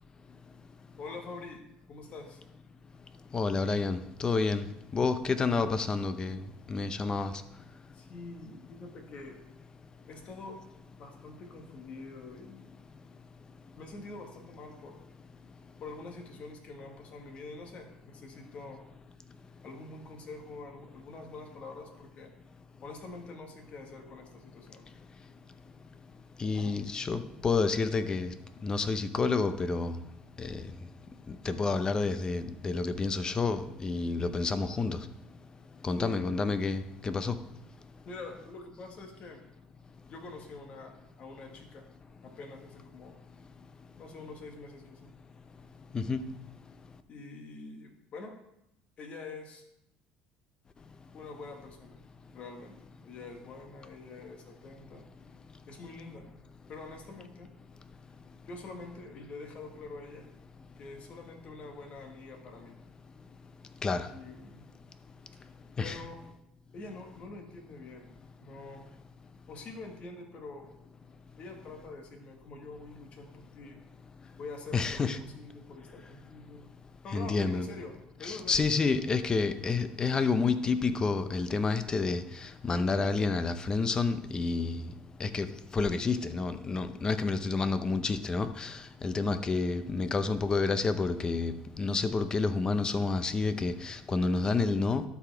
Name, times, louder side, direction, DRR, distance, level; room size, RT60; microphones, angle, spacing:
voice 1, 1.0-1.6 1.9-2.4 7.9-9.4 10.1-10.6 11.0-12.7 13.8-15.0 15.8-18.8 19.6-22.3 22.8-25.0 26.5-27.1 35.9-36.3 38.0-39.4 40.1-41.9 42.2-43.2 44.0-45.1 47.1-48.3 49.0-49.6 51.1-52.0 52.3-55.1 55.7-56.3 56.7-57.5 58.5-60.3 60.8-62.8 64.1-64.7 65.8-66.2 66.7-68.1 68.4-68.8 69.5-70.7 71.4-73.8 74.4-76.7 77.0-78.6, left 3 dB, 45° left, 3 dB, 1.6 m, -46 dB
voice 2, 3.3-4.7 4.9-6.4 6.7-7.3 26.4-28.3 28.6-29.9 30.4-30.6 31.5-35.0 35.8-37.3 45.9-46.2 63.8-64.1 65.8-66.0 74.7-75.2 77.1-77.7 78.2-82.2 82.6-84.8 85.2-85.5 85.7-88.7 89.0-95.0, left 4 dB, 25° left, 11 dB, 0.6 m, -29 dB
12.5 x 5.0 x 3.4 m, 0.82 s
supercardioid pair, 110°, 3 cm